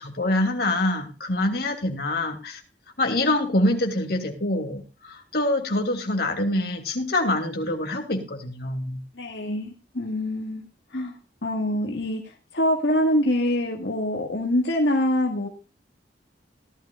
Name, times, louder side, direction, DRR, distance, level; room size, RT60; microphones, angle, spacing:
voice 1, 0.0-2.6 3.0-9.0, left 1 dB, 60° left, 4 dB, 2.9 m, -25 dB
voice 2, 9.1-11.1 11.4-15.5, left 1 dB, 80° left, 1 dB, 1.8 m, -25 dB
17.5 x 12.5 x 2.4 m, 0.27 s
head